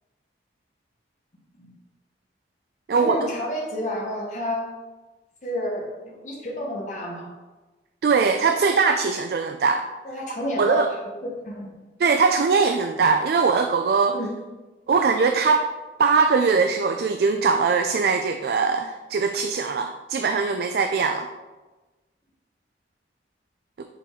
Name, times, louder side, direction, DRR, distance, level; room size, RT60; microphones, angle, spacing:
voice 1, 2.9-4.7 5.4-7.3 10.0-11.7 14.1-14.3, left 1 dB, 40° left, -3 dB, 1.2 m, -30 dB
voice 2, 8.0-9.8 10.6-10.9 12.0-14.2 14.9-15.7 16.0-21.3, right 5 dB, 55° right, 6 dB, 0.3 m, -21 dB
6.6 x 4.0 x 3.7 m, 1.2 s
head